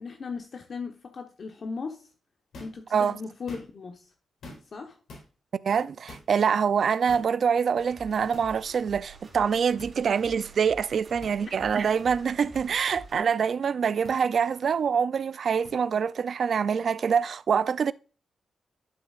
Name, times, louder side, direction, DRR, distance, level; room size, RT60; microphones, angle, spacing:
voice 1, 0.0-2.1 2.6-4.1 4.7-5.0 11.5-11.6, left 4 dB, 45° left, 1.0 m, -37 dB
sound 1, 2.5-2.8 3.3-3.9 4.4-4.8 5.1-5.3 6.1-6.3 7.1-7.3 8.3-8.5 9.8-9.9 11.2-11.4 12.5-12.6 14.0-14.2 15.7-15.8, left 2 dB, 80° left, 3.9 m, -46 dB
voice 2, 5.5-17.9, right 6 dB, 55° right, 0.4 m, -25 dB
sound 2, 7.8-13.2, right 4 dB, 35° right, 3.6 m, -48 dB
11.5 x 6.9 x 2.5 m
wide cardioid pair, 165°, 0 cm